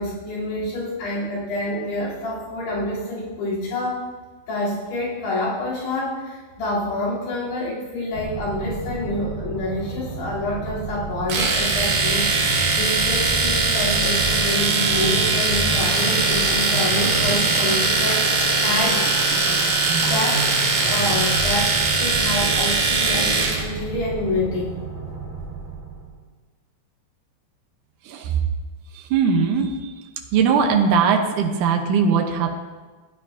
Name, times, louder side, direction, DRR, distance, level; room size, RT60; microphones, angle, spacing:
voice 1, 0.0-4.0 4.5-12.3 12.8-18.2 18.6-19.4 20.0-24.7, left 1 dB, 85° left, -9 dB, 5.4 m, -27 dB
sound 1, 8.1-26.2, right 2 dB, 30° right, 2.2 m, -32 dB
Domestic sounds home sounds, 11.3-23.6, right 4 dB, 55° right, 2.5 m, -21 dB
sound 2, 15.7-21.4, left 2 dB, 50° left, 1.6 m, -33 dB
voice 2, 28.9-29.9 30.3-32.5, right 6 dB, 75° right, 3 dB, 2.0 m, -20 dB
16.0 x 9.6 x 2.7 m, 1.3 s
omnidirectional pair, 4.6 m